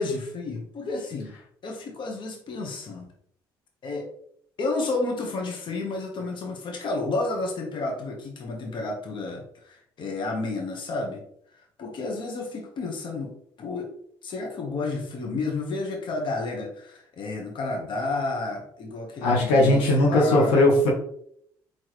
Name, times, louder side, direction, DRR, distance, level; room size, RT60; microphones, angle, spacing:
voice 1, 0.0-1.3 1.6-3.1 3.8-4.1 4.6-13.3 13.6-13.9 14.2-20.5, left 3 dB, 60° left, 1 dB, 1.3 m, -31 dB
voice 2, 19.2-20.9, left 1 dB, 90° left, -2 dB, 1.1 m, -19 dB
4.2 x 4.0 x 3.2 m, 0.67 s
supercardioid pair, 70°, 9 cm